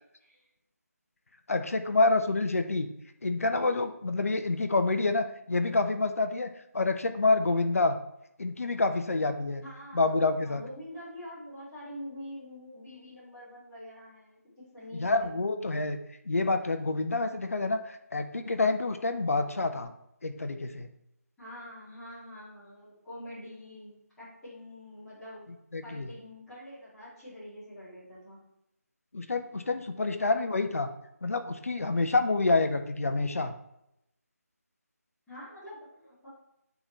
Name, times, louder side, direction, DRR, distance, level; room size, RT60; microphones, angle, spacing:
voice 1, 1.5-2.9 3.2-8.0 8.4-9.6 9.9-10.6 14.9-16.0 16.3-19.9 20.2-20.9 25.7-26.1 29.1-30.9 31.2-33.5, left 3 dB, 60° left, 7 dB, 0.7 m, -27 dB
voice 2, 9.6-15.9 21.4-25.4 25.8-28.4 29.9-30.7 35.3-36.3, left 1 dB, 5° left, -15 dB, 2.3 m, -45 dB
8.6 x 3.9 x 3.2 m, 0.81 s
figure-of-eight pair, 160°, 9 cm